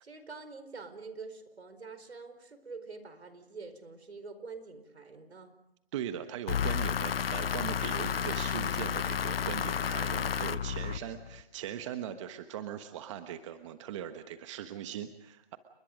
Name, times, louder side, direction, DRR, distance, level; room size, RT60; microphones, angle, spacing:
voice 1, 0.0-5.5, right 4 dB, 80° right, 10 dB, 4.5 m, -46 dB
voice 2, 5.9-15.6, right 10 dB, 30° right, 9 dB, 1.2 m, -40 dB
sound 1, 6.5-11.4, left 8 dB, 65° left, 0.9 m, -32 dB
29.5 x 22.5 x 5.2 m, 0.79 s
hypercardioid pair, 150°, 32 cm